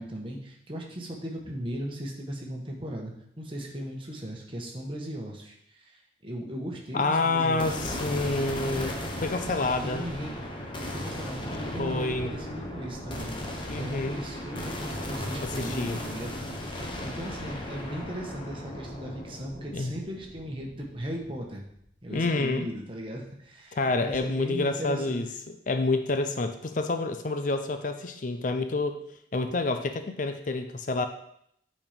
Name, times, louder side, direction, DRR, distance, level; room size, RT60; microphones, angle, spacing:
voice 1, 0.0-7.7 9.8-10.3 10.9-16.4 17.0-21.6 22.0-25.2, equal, 30° right, 0 dB, 1.4 m, -37 dB
voice 2, 6.9-8.9 9.2-10.0 11.8-12.3 13.7-14.2 15.4-16.0 19.7-19.9 22.1-22.7 23.7-29.0 29.3-31.1, left 3 dB, 45° left, 8 dB, 0.5 m, -28 dB
sound 1, 7.6-21.9, left 1 dB, 30° left, 1.0 m, -36 dB
8.5 x 4.4 x 5.1 m, 0.71 s
head